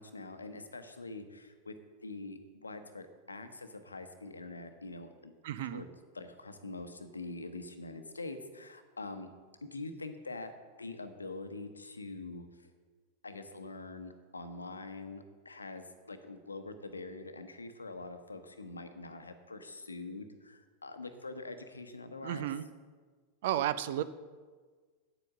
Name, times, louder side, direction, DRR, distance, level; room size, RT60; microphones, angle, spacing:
voice 1, 0.0-1.7 2.0-5.3 5.6-5.9 6.1-9.3 9.6-10.5 10.8-12.7 13.2-22.5, left 3 dB, 80° left, 8 dB, 0.9 m, -44 dB
voice 2, 5.4-5.8 22.2-22.6 23.4-24.0, right 12 dB, 55° right, 14 dB, 0.5 m, -32 dB
8.8 x 8.2 x 6.4 m, 1.5 s
figure-of-eight pair, 90°, 0 cm